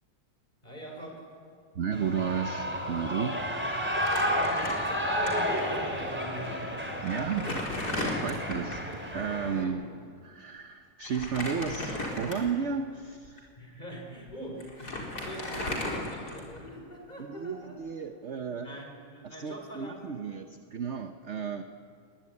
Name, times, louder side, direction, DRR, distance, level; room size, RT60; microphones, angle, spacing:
voice 1, 0.6-1.3 4.2-6.7 9.6-10.0 13.6-17.8 18.4-20.3, right 1 dB, 20° left, 1 dB, 5.6 m, -43 dB
voice 2, 1.7-4.2 7.0-9.8 10.2-13.5 17.2-18.7 19.2-21.6, right 6 dB, 50° right, 7 dB, 0.9 m, -34 dB
Shout / Cheering, 1.9-9.6, equal, 5° right, 2.9 m, -32 dB
Crumpling crinkling, 3.9-5.3 5.6-5.7 6.6-6.7 7.1-8.9 11.0-12.7 13.2-13.4 14.3-14.4 14.6-16.7, left 1 dB, 50° left, 4.8 m, -35 dB
23.0 x 21.0 x 9.7 m, 2.2 s
omnidirectional pair, 2.2 m